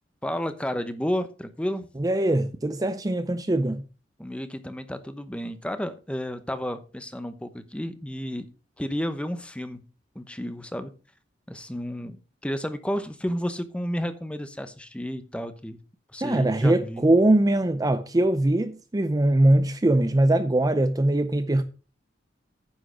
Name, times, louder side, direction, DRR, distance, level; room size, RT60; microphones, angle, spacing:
voice 1, 0.2-1.9 4.2-8.5 8.8-9.8 10.1-10.9 11.5-12.2 12.4-15.8 16.1-17.1, equal, 5° left, 0.8 m, -31 dB
voice 2, 2.0-3.8 16.2-21.6, right 1 dB, 20° right, 0.5 m, -22 dB
9.7 x 6.4 x 5.0 m
head